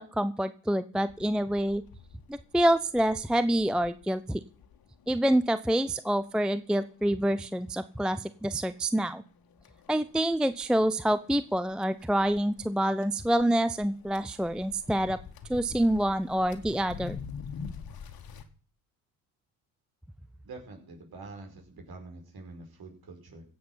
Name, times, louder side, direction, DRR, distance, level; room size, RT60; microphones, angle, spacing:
voice 1, 0.0-1.8 2.3-4.4 5.1-9.2 9.9-15.2 15.5-17.2, right 1 dB, ahead, 14 dB, 0.5 m, -27 dB
sound 1, 1.1-18.4, left 6 dB, 45° left, 1.9 m, -48 dB
voice 2, 20.4-23.4, right 3 dB, 50° right, 3 dB, 5.4 m, -46 dB
16.5 x 7.8 x 5.7 m, 0.41 s
hypercardioid pair, 60°, 48 cm